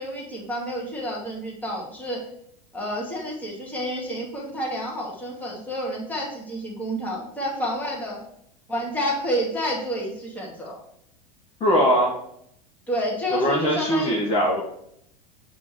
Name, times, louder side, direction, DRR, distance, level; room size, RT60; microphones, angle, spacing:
voice 1, 0.0-2.2 2.7-8.2 8.7-10.8 12.9-14.2, equal, 10° left, -3 dB, 2.0 m, -29 dB
voice 2, 11.6-12.1 13.3-14.6, equal, 30° left, -4 dB, 1.5 m, -21 dB
7.7 x 3.1 x 4.6 m, 0.72 s
figure-of-eight pair, 85°, 21 cm